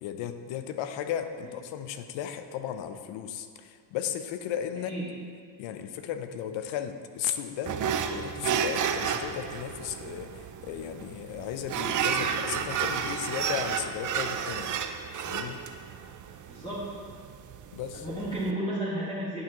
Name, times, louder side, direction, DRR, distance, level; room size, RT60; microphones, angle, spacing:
voice 1, 0.0-4.9 5.6-7.8 8.1-14.7 15.2-15.6 17.7-18.1, left 9 dB, 70° left, 9 dB, 0.7 m, -35 dB
voice 2, 4.8-5.2 16.5-17.0 17.9-19.4, right 1 dB, 10° left, -10 dB, 1.7 m, -33 dB
sound 1, 7.6-18.5, right 7 dB, 40° right, 0.5 m, -32 dB
9.5 x 6.0 x 3.0 m, 2.1 s
supercardioid pair, 85°, 47 cm